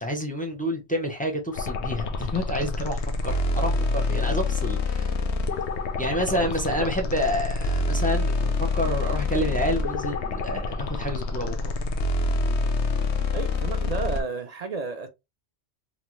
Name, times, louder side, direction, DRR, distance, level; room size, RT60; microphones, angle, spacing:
voice 1, 0.0-5.1 6.0-11.7, equal, 10° left, 0.4 m, -29 dB
sound 1, 1.5-14.2, left 3 dB, 85° left, 0.9 m, -27 dB
voice 2, 6.3-6.9 13.3-15.1, right 4 dB, 60° right, 0.4 m, -32 dB
2.9 x 2.1 x 3.0 m
omnidirectional pair, 1.1 m